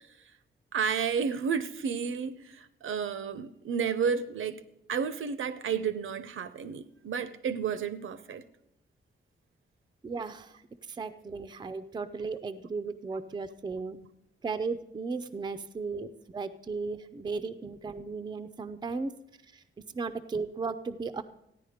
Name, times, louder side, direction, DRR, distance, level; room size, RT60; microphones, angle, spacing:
voice 1, 0.7-4.6 4.9-8.4, right 6 dB, 75° right, 0.7 m, -31 dB
voice 2, 10.0-14.0 14.4-19.1 19.5-19.6 19.9-21.2, right 4 dB, 20° right, 0.5 m, -36 dB
14.5 x 9.9 x 5.0 m
wide cardioid pair, 165°, 21 cm